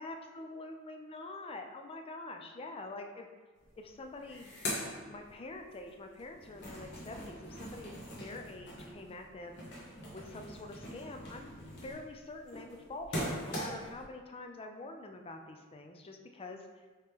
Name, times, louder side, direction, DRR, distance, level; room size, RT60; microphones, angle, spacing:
voice 1, 0.0-3.3 3.8-4.5 5.0-9.6 10.1-11.5 11.8-16.7, left 2 dB, 25° left, 4 dB, 0.4 m, -46 dB
sound 1, 3.6-3.7 4.0-5.8 6.1-14.0, equal, 55° left, 1.0 m, -42 dB
4.9 x 2.9 x 3.5 m, 1.4 s
head